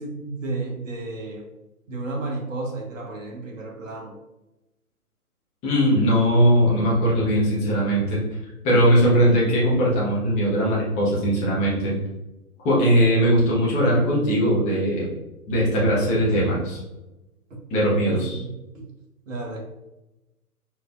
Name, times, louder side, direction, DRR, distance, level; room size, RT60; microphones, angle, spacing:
voice 1, 0.0-1.5 1.9-4.2 18.1-18.9 19.3-19.6, right 2 dB, 55° right, 1 dB, 1.2 m, -32 dB
voice 2, 5.6-8.2 8.6-11.9 12.6-15.1 15.5-16.8 17.7-18.4, equal, 15° left, -6 dB, 1.1 m, -20 dB
4.4 x 3.1 x 2.4 m, 0.98 s
figure-of-eight pair, 125°, 46 cm